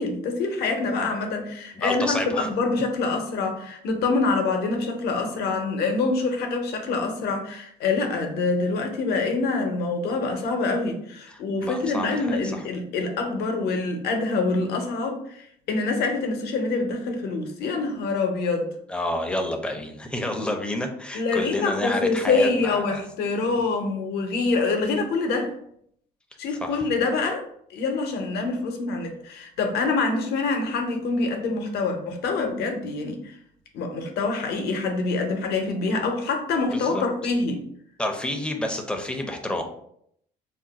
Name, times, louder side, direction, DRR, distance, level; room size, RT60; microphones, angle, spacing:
voice 1, 0.0-18.7 21.1-25.5 26.4-27.4 27.7-33.3 33.7-37.6, left 3 dB, 75° left, 4 dB, 0.7 m, -25 dB
voice 2, 1.8-2.5 11.3-12.6 18.9-23.0 23.5-23.6 26.6-26.9 36.7-37.1 38.0-39.6, left 1 dB, 5° left, 3 dB, 0.5 m, -29 dB
2.4 x 2.1 x 3.9 m, 0.69 s
cardioid pair, 110°, 17 cm